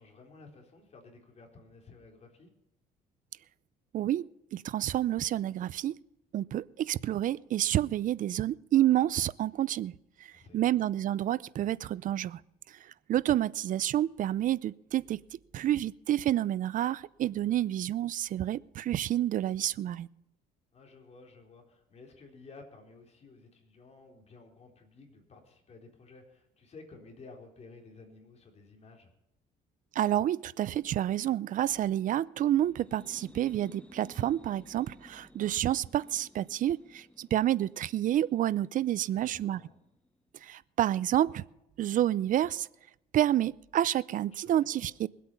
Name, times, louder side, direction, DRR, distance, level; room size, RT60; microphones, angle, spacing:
voice 1, 0.0-2.5 10.3-10.9 17.4-17.9 20.7-29.1 39.1-39.8 44.3-44.9, left 3 dB, 40° left, 3.9 m, -54 dB
voice 2, 3.9-5.9 6.3-9.9 10.2-12.4 12.7-20.1 29.9-39.6 40.4-41.4 41.8-42.7 43.1-45.1, right 12 dB, 50° right, 0.5 m, -29 dB
sound 1, 32.6-40.2, left 1 dB, 5° left, 0.8 m, -56 dB
22.0 x 8.4 x 5.6 m
cardioid pair, 110°, 17 cm